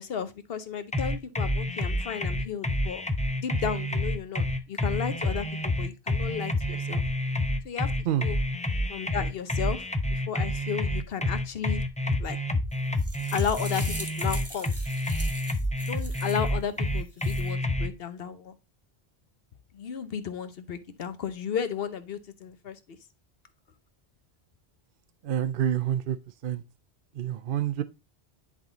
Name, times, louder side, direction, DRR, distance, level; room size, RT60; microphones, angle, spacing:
voice 1, 0.0-3.0 3.4-7.0 7.6-7.9 8.2-8.4 8.9-9.8 10.1-11.8 12.2-12.4 13.3-14.7 15.9-18.5 19.7-23.0, left 7 dB, 65° left, 1.1 m, -34 dB
sound 1, 0.9-17.9, left 1 dB, 10° left, 0.4 m, -28 dB
sound 2, 12.7-16.5 17.0-17.5, right 1 dB, 15° right, 1.3 m, -41 dB
voice 2, 25.2-26.2 26.4-26.6 27.1-27.8, right 10 dB, 65° right, 0.7 m, -27 dB
10.5 x 3.8 x 3.9 m
omnidirectional pair, 1.1 m